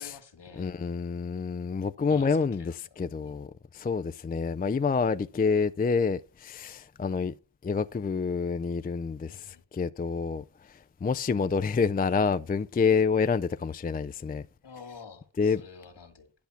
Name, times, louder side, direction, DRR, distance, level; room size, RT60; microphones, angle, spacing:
voice 1, 0.0-0.7 2.1-3.4 9.3-9.6 14.6-16.3, left 5 dB, 65° left, 2.0 m, -49 dB
voice 2, 0.6-3.5 3.7-7.3 7.6-14.4 15.4-15.6, left 5 dB, 20° left, 0.4 m, -28 dB
10.5 x 5.6 x 5.8 m
cardioid pair, 50°, 45 cm